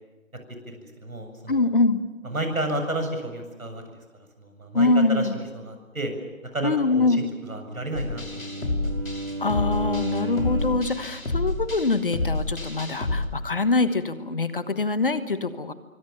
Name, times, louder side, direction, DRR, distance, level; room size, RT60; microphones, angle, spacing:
voice 1, 0.7-1.7 2.2-3.8 4.4-6.1 6.5-8.2 8.5-8.6, right 1 dB, 90° right, 6 dB, 7.6 m, -31 dB
voice 2, 1.5-2.0 4.7-5.3 6.6-7.2 9.4-15.7, left 3 dB, 40° left, 12 dB, 1.3 m, -24 dB
Bowed string instrument, 7.4-11.0, right 1 dB, 70° right, 2.5 m, -33 dB
sound 1, 7.9-13.3, left 2 dB, 75° left, 5.7 m, -29 dB
26.0 x 24.5 x 7.0 m, 1.2 s
figure-of-eight pair, 170°, 41 cm